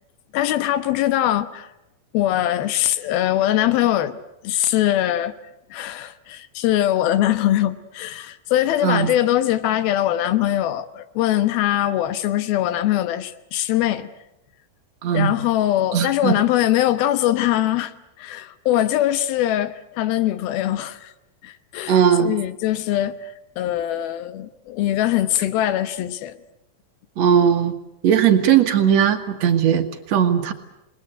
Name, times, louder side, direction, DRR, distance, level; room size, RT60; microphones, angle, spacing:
voice 1, 0.3-1.7 2.1-4.2 4.4-5.3 5.7-14.1 15.1-17.9 18.2-21.1 21.4-23.2 23.6-26.3, left 13 dB, 80° left, 3.0 m, -22 dB
voice 2, 15.0-15.3 15.9-16.3 21.9-22.3 27.2-27.7 28.0-30.5, right 8 dB, 55° right, 2.3 m, -18 dB
28.0 x 20.5 x 7.9 m
omnidirectional pair, 4.3 m